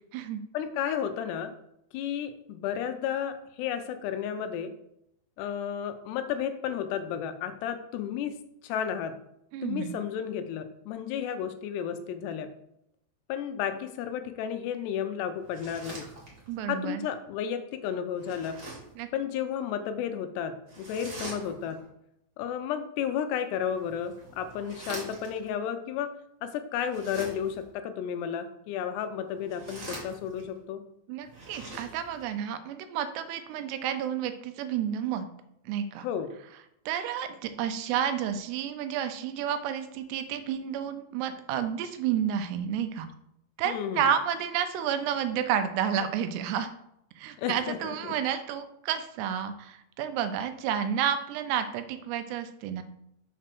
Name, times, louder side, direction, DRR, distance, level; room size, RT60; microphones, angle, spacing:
voice 1, 0.5-1.5 1.9-4.7 5.4-8.3 8.6-9.2 9.6-12.5 13.3-16.1 16.7-18.6 19.1-21.8 22.4-26.1 26.4-30.8 36.0-36.3 43.7-44.0 47.4-47.8, left 8 dB, 80° left, 8 dB, 2.8 m, -32 dB
voice 2, 9.5-10.0 16.5-17.0 19.0-19.1 31.1-35.3 35.7-36.1 36.9-43.1 43.6-46.7 47.2-52.8, right 9 dB, 80° right, 9 dB, 2.8 m, -30 dB
sound 1, 15.4-16.6 18.1-19.0 20.7-21.8 23.6-25.5 26.8-27.7 29.3-30.6 31.2-32.3, right 2 dB, 65° right, 0.8 m, -44 dB
6.6 x 4.6 x 6.0 m, 0.76 s
omnidirectional pair, 4.9 m